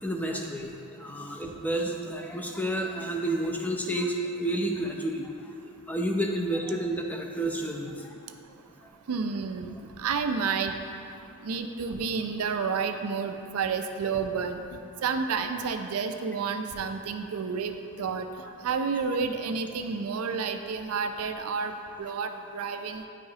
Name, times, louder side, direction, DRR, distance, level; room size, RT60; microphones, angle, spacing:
voice 1, 0.0-5.3 5.9-8.1, right 1 dB, 5° left, 1 dB, 0.5 m, -30 dB
voice 2, 9.1-10.7 11.4-14.6 15.0-18.3 18.6-21.7 22.0-23.0, right 5 dB, 75° right, 7 dB, 0.4 m, -30 dB
9.4 x 4.9 x 2.8 m, 2.7 s
head